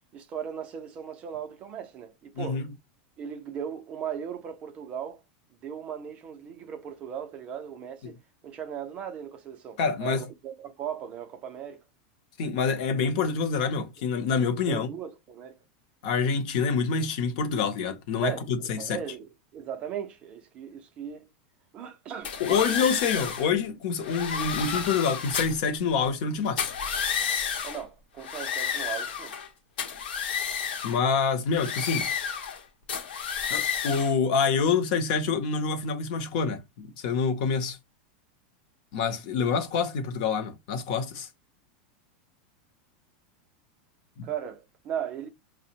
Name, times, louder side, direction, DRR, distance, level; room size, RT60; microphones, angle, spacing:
voice 1, 0.1-2.6 3.2-5.2 5.6-8.2 8.4-11.8 14.7-15.6 18.2-21.3 21.7-22.6 23.1-23.2 27.6-29.4 44.2-45.3, right 8 dB, 20° right, 0.4 m, -37 dB
voice 2, 2.4-2.7 8.0-8.1 9.8-10.2 12.4-14.9 16.0-19.0 22.4-26.7 30.8-32.1 33.5-37.8 38.9-41.3 44.2-44.3, left 5 dB, 50° left, 0.6 m, -27 dB
sound 1, 22.2-23.5 24.0-25.7 26.5-27.8 28.2-29.5 29.8-31.0 31.5-32.6 32.9-34.1, left 7 dB, 80° left, 0.8 m, -31 dB
5.0 x 2.0 x 2.8 m
supercardioid pair, 175°, 5 cm